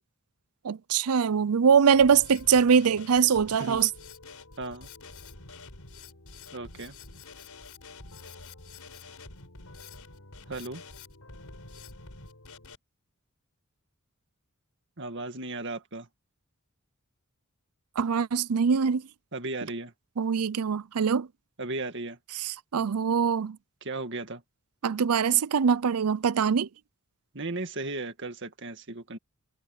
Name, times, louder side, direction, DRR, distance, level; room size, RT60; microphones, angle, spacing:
voice 1, 0.6-3.9 18.0-19.0 20.2-21.3 22.4-23.6 24.8-26.7, right 6 dB, 85° right, 0.5 m, -23 dB
Drum kit, 1.9-12.7, left 3 dB, 90° left, 4.6 m, -47 dB
voice 2, 4.6-4.9 6.5-6.9 10.5-10.8 15.0-16.1 19.3-19.9 21.6-22.2 23.8-24.4 27.3-29.2, right 2 dB, 55° right, 2.1 m, -35 dB
head